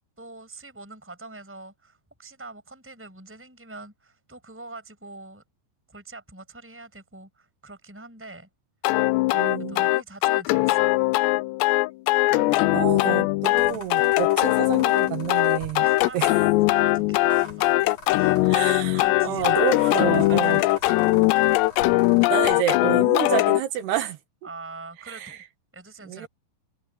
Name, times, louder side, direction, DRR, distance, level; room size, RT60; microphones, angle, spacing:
voice 1, 0.2-5.4 5.9-8.5 9.7-10.9 12.3-12.7 15.8-17.8 18.1-18.5 18.9-21.1 24.4-25.4 25.7-26.3, right 3 dB, 5° right, 6.3 m, -43 dB
sound 1, 8.8-23.6, left 20 dB, 90° left, 2.8 m, -21 dB
voice 2, 9.3-9.9 12.3-15.9 16.1-16.3 18.5-20.6 22.3-24.2 25.1-25.4 26.1-26.3, right 11 dB, 75° right, 3.5 m, -29 dB
sound 2, 13.5-22.5, left 3 dB, 45° left, 5.1 m, -44 dB
omnidirectional pair, 4.8 m